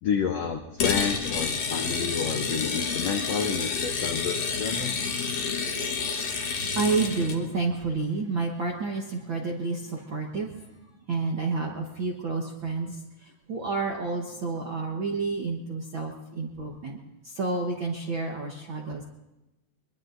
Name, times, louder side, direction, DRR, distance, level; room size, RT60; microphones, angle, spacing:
voice 1, 0.0-4.9, left 6 dB, 85° left, 4 dB, 1.4 m, -30 dB
sound 1, 0.8-7.4, left 5 dB, 60° left, 2.2 m, -29 dB
voice 2, 6.2-10.8 11.1-17.0 17.2-19.0, right 4 dB, 60° right, -1 dB, 1.3 m, -30 dB
23.5 x 22.5 x 2.6 m, 0.98 s
omnidirectional pair, 4.1 m